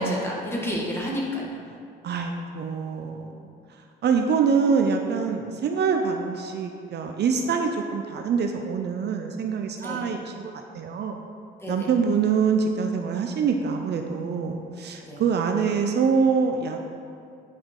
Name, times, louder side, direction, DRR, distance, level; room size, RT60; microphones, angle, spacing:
voice 1, 0.0-1.6 9.8-10.1 11.6-11.9 15.0-15.2, equal, 10° left, -4 dB, 1.8 m, -29 dB
voice 2, 2.0-3.3 4.0-11.2 11.7-16.8, right 5 dB, 60° right, 4 dB, 0.6 m, -25 dB
9.2 x 4.9 x 3.7 m, 2.4 s
cardioid pair, 90°, 20 cm